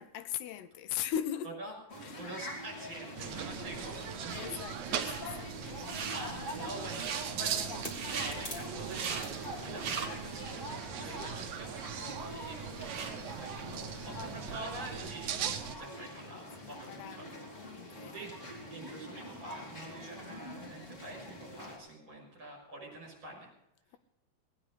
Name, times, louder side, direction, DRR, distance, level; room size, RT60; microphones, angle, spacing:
voice 1, 0.0-1.6 2.0-2.2 4.3-6.7 13.7-14.6 16.6-17.3 17.6-18.3, left 10 dB, 80° left, 2.6 m, -41 dB
voice 2, 1.4-4.5 6.1-7.1 7.3-17.4 18.1-23.5, right 2 dB, 25° right, 6.6 m, -46 dB
sound 1, 1.9-21.8, left 1 dB, 20° left, 2.7 m, -45 dB
sound 2, 3.2-15.8, right 8 dB, 90° right, 1.6 m, -40 dB
sound 3, 5.0-5.2 5.7-6.3 6.8-7.2 7.8-8.3 8.8-9.3 9.7-10.4 10.9-11.0 11.7-11.8 12.0-13.2, right 6 dB, 55° right, 2.3 m, -39 dB
19.5 x 9.8 x 5.0 m
omnidirectional pair, 5.0 m